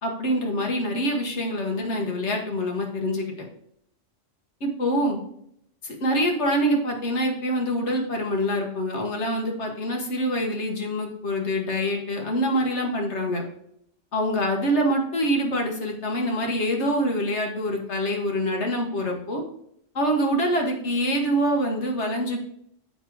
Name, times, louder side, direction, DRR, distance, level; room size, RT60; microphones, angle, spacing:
voice 1, 0.0-3.5 4.6-5.2 5.8-13.4 14.1-19.4 19.9-22.4, equal, 65° left, 1 dB, 1.7 m, -25 dB
7.2 x 5.3 x 4.7 m, 0.73 s
omnidirectional pair, 1.3 m